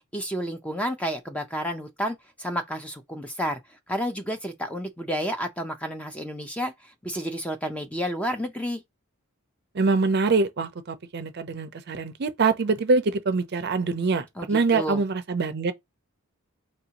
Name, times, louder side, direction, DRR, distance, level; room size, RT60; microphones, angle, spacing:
voice 1, 0.1-3.6 3.9-6.7 7.0-8.8 14.4-15.0, equal, 5° left, 0.5 m, -30 dB
voice 2, 9.7-15.7, right 4 dB, 50° right, 0.5 m, -24 dB
4.3 x 2.6 x 2.8 m
head